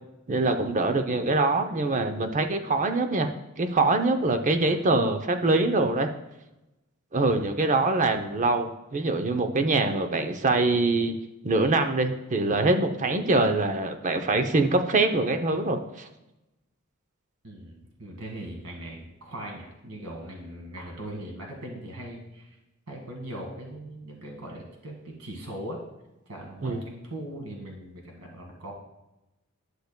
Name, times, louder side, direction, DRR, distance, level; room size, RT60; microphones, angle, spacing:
voice 1, 0.3-3.3 3.6-6.1 7.1-11.1 11.4-16.1 26.6-26.8, right 2 dB, 35° right, 7 dB, 0.6 m, -24 dB
voice 2, 17.4-22.6 22.9-25.8 26.3-28.7, right 1 dB, 90° right, 0 dB, 1.6 m, -40 dB
11.5 x 6.5 x 2.2 m, 0.96 s
head